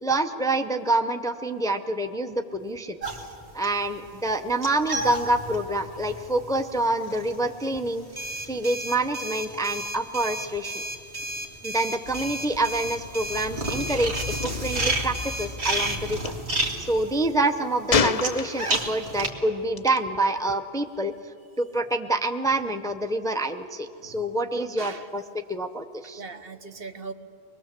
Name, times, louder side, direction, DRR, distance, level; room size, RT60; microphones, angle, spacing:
voice 1, 0.0-3.0 3.5-8.0 8.5-10.8 11.6-14.1 14.4-16.3 16.8-21.1 21.6-26.2, right 2 dB, 5° left, 7 dB, 0.7 m, -27 dB
sound 1, 3.0-10.5 10.8-19.3, right 1 dB, 80° right, 2.3 m, -32 dB
sound 2, 8.2-16.0, right 1 dB, 30° right, 1.9 m, -34 dB
Gunshot gunfire, 16.1-16.3 17.9-18.9 19.8-20.0, left 5 dB, 40° left, 0.6 m, -25 dB
voice 2, 24.8-25.1 26.2-27.1, right 4 dB, 60° right, 8 dB, 1.2 m, -39 dB
24.5 x 21.0 x 7.6 m, 2.6 s
omnidirectional pair, 1.1 m